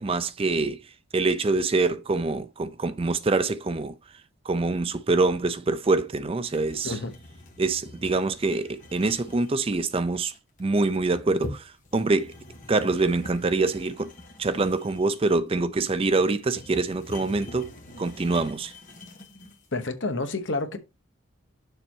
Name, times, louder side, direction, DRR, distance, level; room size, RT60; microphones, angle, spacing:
voice 1, 0.0-7.0 7.6-10.3 10.6-12.4 12.7-14.1 14.4-17.7 18.0-18.7, right 3 dB, 25° right, 0.4 m, -25 dB
sound 1, 6.4-19.7, left 1 dB, 35° left, 1.8 m, -44 dB
voice 2, 19.7-20.8, left 2 dB, 55° left, 1.1 m, -29 dB
6.8 x 4.2 x 4.6 m
head